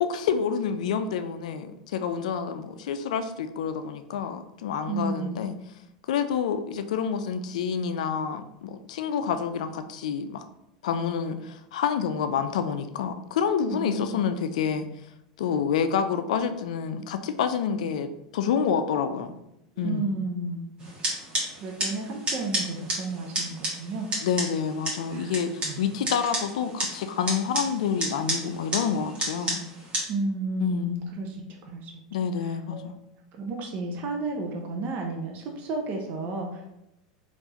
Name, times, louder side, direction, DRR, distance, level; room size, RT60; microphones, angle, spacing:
voice 1, 0.0-5.5 6.1-10.4 10.8-14.9 15.4-19.3 19.8-20.1 24.2-29.6 30.6-31.0 32.1-33.0, left 7 dB, 75° left, 9 dB, 0.3 m, -28 dB
voice 2, 4.9-5.4 13.7-14.2 19.8-20.6 21.6-24.1 25.1-25.3 25.6-25.8 30.1-31.9 32.4-32.9 33.4-36.7, right 3 dB, 45° right, 1 dB, 0.6 m, -32 dB
sound 1, 20.8-30.0, right 1 dB, 30° right, 1.4 m, -32 dB
3.5 x 2.5 x 2.9 m, 0.84 s
hypercardioid pair, 100°, 4 cm